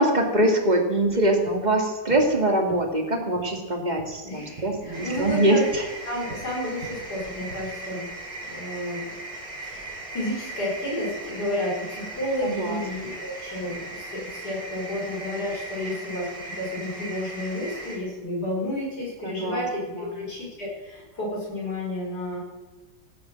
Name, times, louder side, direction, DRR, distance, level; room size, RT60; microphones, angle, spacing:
voice 1, 0.0-5.9 12.4-13.2 19.2-20.2, right 1 dB, 25° right, 2 dB, 2.4 m, -24 dB
sound 1, 1.0-7.6, right 3 dB, 80° right, 3.0 m, -46 dB
voice 2, 4.2-5.7 6.1-8.1 8.4-9.2 9.6-22.4, left 1 dB, 55° left, -3 dB, 5.5 m, -31 dB
sound 2, 4.9-18.0, right 2 dB, 50° right, 4.8 m, -38 dB
16.5 x 9.4 x 7.7 m, 1.3 s
omnidirectional pair, 2.0 m